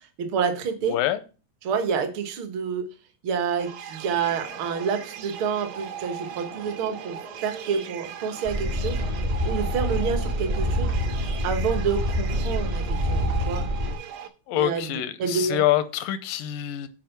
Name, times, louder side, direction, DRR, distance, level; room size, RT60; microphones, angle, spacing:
voice 1, 0.2-1.0 1.6-2.9 3.2-9.0 9.4-10.9 11.4-13.7 14.5-15.6, right 6 dB, 55° right, 1.5 m, -28 dB
voice 2, 0.8-1.2 14.5-16.9, left 13 dB, 90° left, 2.4 m, -25 dB
sound 1, 3.6-14.3, right 9 dB, 90° right, 2.6 m, -40 dB
sound 2, 4.0-13.5, right 3 dB, 70° right, 4.3 m, -45 dB
sound 3, 8.4-13.9, equal, 30° right, 0.9 m, -26 dB
9.2 x 4.9 x 5.9 m
omnidirectional pair, 3.9 m